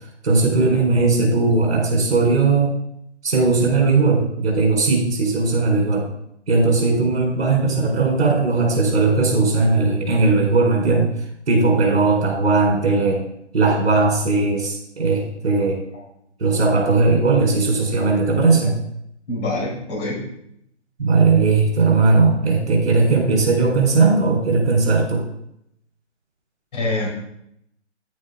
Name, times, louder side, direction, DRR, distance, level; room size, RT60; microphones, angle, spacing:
voice 1, 0.2-2.7 3.2-6.0 6.5-11.1 11.5-13.2 13.5-15.8 16.4-18.8 21.0-25.2, right 3 dB, 60° right, 0 dB, 4.5 m, -18 dB
voice 2, 19.3-20.3 26.7-27.1, left 2 dB, 35° left, -4 dB, 4.7 m, -25 dB
10.0 x 9.4 x 3.7 m, 0.75 s
figure-of-eight pair, 145°, 36 cm